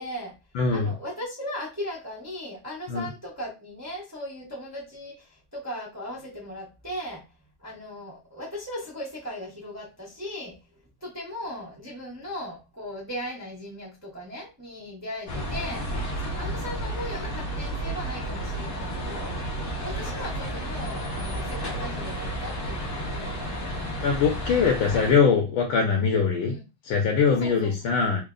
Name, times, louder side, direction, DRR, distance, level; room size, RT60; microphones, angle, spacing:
voice 1, 0.0-0.4 0.7-7.3 7.6-10.7 11.0-19.5 19.8-24.0 24.5-24.7 26.5-26.6 27.4-28.0, equal, 25° right, 0.3 m, -38 dB
voice 2, 0.6-0.9 2.9-3.1 24.0-26.6 26.8-28.2, left 5 dB, 75° left, 1.3 m, -22 dB
sound 1, 15.3-25.1, right 1 dB, 40° left, 0.8 m, -32 dB
3.6 x 2.1 x 3.7 m
omnidirectional pair, 2.4 m